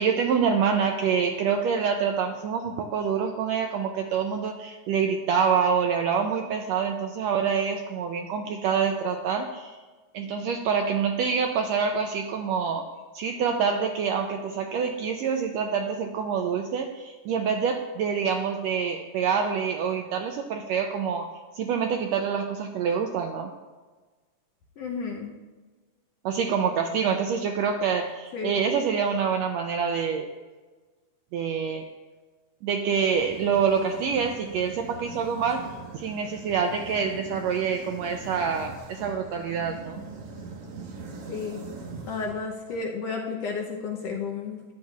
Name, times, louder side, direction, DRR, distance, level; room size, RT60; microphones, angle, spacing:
voice 1, 0.0-9.8 10.1-12.9 13.1-21.3 21.5-23.5 26.2-30.3 31.3-31.8 32.6-40.0, right 6 dB, 85° right, 4 dB, 1.5 m, -26 dB
voice 2, 24.8-25.3 28.3-28.6 41.3-41.6 42.0-44.6, left 5 dB, 70° left, 0 dB, 1.6 m, -32 dB
sound 1, 33.1-42.8, right 3 dB, 60° right, 2.0 m, -42 dB
12.5 x 9.9 x 2.4 m, 1.3 s
omnidirectional pair, 3.5 m